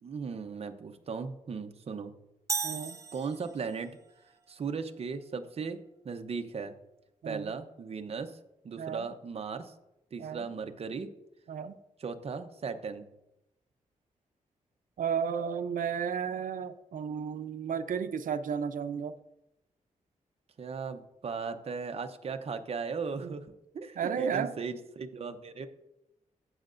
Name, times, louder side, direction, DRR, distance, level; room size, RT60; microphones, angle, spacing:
voice 1, 0.0-2.1 3.1-4.0 4.5-6.7 7.2-8.4 8.6-9.7 10.1-11.1 12.0-13.1 20.6-25.7, right 5 dB, 50° right, 7 dB, 0.7 m, -37 dB
sound 1, 2.5-3.9, right 4 dB, 25° right, 0.4 m, -35 dB
voice 2, 2.6-3.0 7.2-7.5 8.8-9.1 10.2-10.5 11.5-11.8 15.0-19.1 23.2-23.3 24.0-24.5, right 7 dB, 85° right, 10 dB, 0.6 m, -33 dB
15.5 x 6.4 x 2.6 m, 0.90 s
wide cardioid pair, 130°, 14 cm